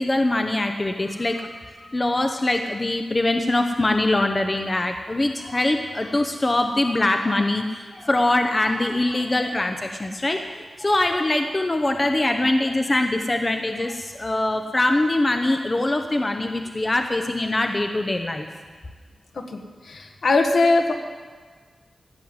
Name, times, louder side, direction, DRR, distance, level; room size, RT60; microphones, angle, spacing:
voice 1, 0.0-18.5, left 2 dB, 25° left, 5 dB, 0.8 m, -23 dB
voice 2, 19.8-20.9, left 3 dB, 65° left, 4 dB, 1.5 m, -20 dB
15.5 x 7.7 x 9.6 m, 1.5 s
wide cardioid pair, 140°, 0 cm